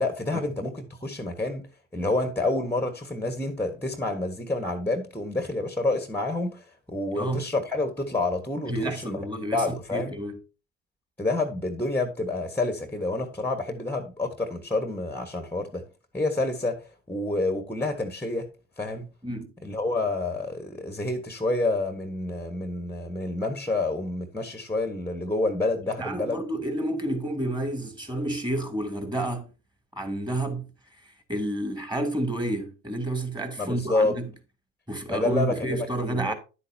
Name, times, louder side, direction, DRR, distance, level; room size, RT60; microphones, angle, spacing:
voice 1, 0.0-1.7 1.9-9.2 9.5-10.1 11.2-15.8 16.1-18.5 18.8-19.1 19.6-26.4 33.6-34.2 35.1-36.3, left 2 dB, 5° left, 1.4 m, -28 dB
voice 2, 8.7-10.4 19.2-19.5 26.0-29.5 30.0-30.7 31.3-34.3 34.9-36.3, right 1 dB, 10° right, 2.7 m, -30 dB
10.5 x 8.2 x 2.8 m
hypercardioid pair, 65°, 36 cm